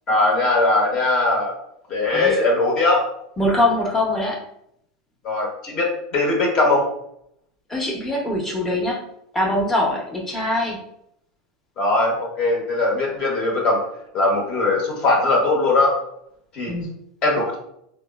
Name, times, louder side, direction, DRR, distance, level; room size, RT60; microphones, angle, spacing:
voice 1, 0.1-1.5 1.9-3.0 5.2-6.8 11.8-13.8 14.1-15.9 16.5-16.7 17.2-17.5, left 2 dB, 40° left, -1 dB, 1.0 m, -20 dB
voice 2, 3.4-4.4 7.7-9.0 9.3-10.8 16.7-16.9, left 1 dB, 15° left, -3 dB, 0.8 m, -22 dB
3.5 x 2.0 x 2.3 m, 0.74 s
supercardioid pair, 110°, 2 cm